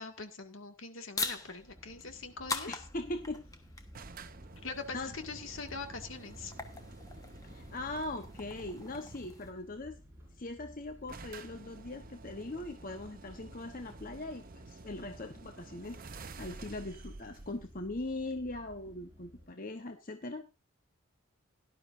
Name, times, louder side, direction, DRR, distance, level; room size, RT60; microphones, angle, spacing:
voice 1, 0.0-2.7 4.6-6.5, left 4 dB, 70° left, 6 dB, 2.1 m, -43 dB
sound 1, 1.1-9.5, left 3 dB, 15° left, 1.3 m, -43 dB
sound 2, 1.7-19.5, equal, 10° right, 5.7 m, -55 dB
voice 2, 2.7-3.5 4.9-5.1 7.4-10.0 10.4-16.0 16.4-20.5, left 2 dB, 40° left, 6 dB, 1.0 m, -40 dB
sound 3, 3.9-9.5 10.5-10.6 10.7-10.8 11.1-18.6, right 3 dB, 45° right, 0.7 m, -51 dB
17.5 x 12.0 x 2.6 m, 0.27 s
head